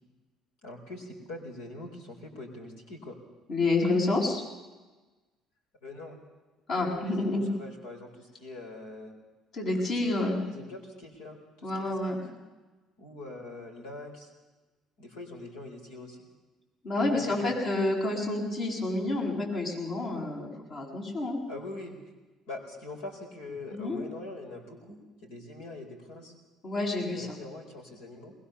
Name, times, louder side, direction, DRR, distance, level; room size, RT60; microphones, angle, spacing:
voice 1, 0.6-3.2 5.8-6.2 6.8-9.1 10.2-12.2 13.0-14.3 15.0-16.2 17.0-17.7 21.5-22.0 22.5-26.3 27.1-28.3, left 2 dB, 85° left, 1 dB, 4.4 m, -43 dB
voice 2, 3.5-4.4 6.7-7.5 9.5-10.4 11.6-12.2 16.8-21.4 23.7-24.0 26.6-27.4, left 2 dB, 60° left, -1 dB, 8.0 m, -29 dB
21.5 x 20.5 x 7.0 m, 1.2 s
hypercardioid pair, 65°, 0 cm